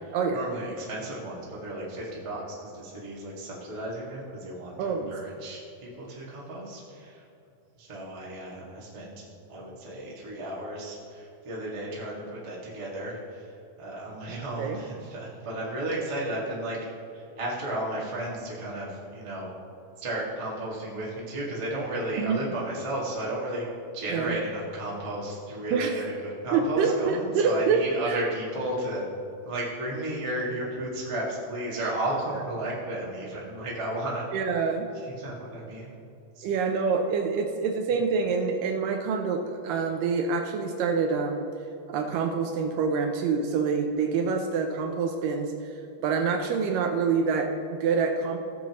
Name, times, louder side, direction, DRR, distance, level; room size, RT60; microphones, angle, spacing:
voice 1, 0.3-7.2 7.8-16.8 17.1-19.5 20.0-23.6 23.9-29.1 29.4-34.3 35.2-35.9 36.3-36.4, right 1 dB, 45° right, -5 dB, 0.4 m, -34 dB
voice 2, 4.8-5.1 14.3-14.8 22.2-22.4 24.1-24.4 25.7-26.0 26.5-28.2 34.3-34.9 36.4-41.5 41.9-45.5 46.0-48.4, right 5 dB, 80° right, 4 dB, 2.1 m, -26 dB
17.0 x 7.1 x 3.1 m, 2.6 s
omnidirectional pair, 4.3 m